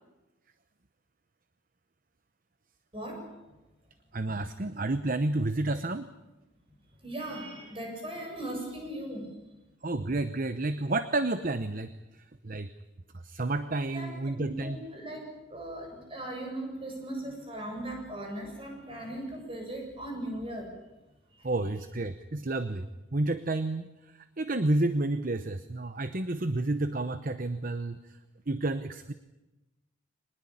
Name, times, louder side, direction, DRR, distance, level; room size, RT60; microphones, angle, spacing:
voice 1, 2.9-3.6 7.0-9.4 13.9-20.8 21.3-21.5, right 1 dB, 25° right, 2 dB, 7.7 m, -39 dB
voice 2, 4.1-6.1 9.8-12.7 13.2-14.8 21.4-23.8 24.1-28.2 28.5-29.1, right 2 dB, 40° right, 11 dB, 0.9 m, -30 dB
24.5 x 20.0 x 8.7 m, 1.0 s
head